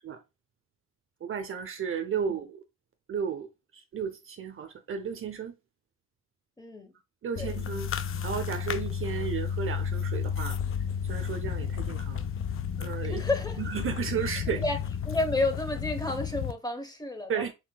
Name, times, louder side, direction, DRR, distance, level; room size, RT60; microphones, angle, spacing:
voice 1, 1.2-2.6 3.1-3.5 3.9-5.5 7.2-7.9 8.2-10.6 11.1-12.3 12.8-13.2 13.6-14.6 17.3-17.5, right 7 dB, 45° right, 0.7 m, -33 dB
voice 2, 6.6-6.9 7.4-7.5 13.0-13.6 14.6-14.8 15.1-17.5, left 2 dB, 15° left, 1.0 m, -31 dB
sound 1, 7.4-16.5, left 7 dB, 45° left, 0.5 m, -32 dB
4.4 x 4.0 x 2.2 m
cardioid pair, 90°, 30 cm